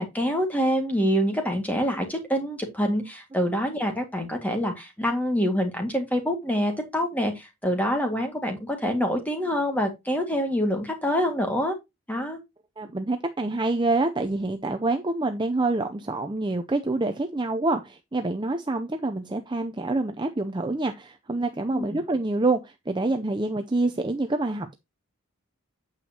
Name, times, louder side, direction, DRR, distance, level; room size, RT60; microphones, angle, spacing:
voice 1, 0.0-11.8 12.1-12.4 21.7-21.9, equal, 5° left, 1.9 m, -26 dB
voice 2, 12.8-24.7, right 2 dB, 20° right, 0.5 m, -26 dB
8.9 x 7.2 x 2.8 m
head